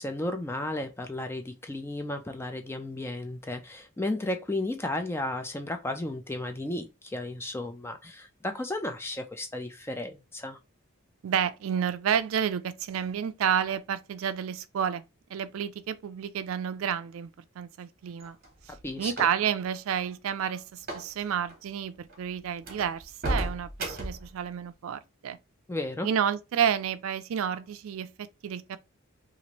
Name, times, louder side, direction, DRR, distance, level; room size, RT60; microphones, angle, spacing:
voice 1, 0.0-10.6 18.8-19.1 25.7-26.1, left 1 dB, 10° left, 0.3 m, -34 dB
voice 2, 11.2-15.0 15.3-17.3 17.6-18.4 18.7-25.4 26.0-28.8, right 8 dB, 70° right, 0.3 m, -30 dB
sound 1, 18.2-19.6 20.8-21.1 21.4-21.6 22.1-22.2 22.6-24.3, right 1 dB, 45° right, 1.0 m, -34 dB
2.9 x 2.5 x 2.9 m
head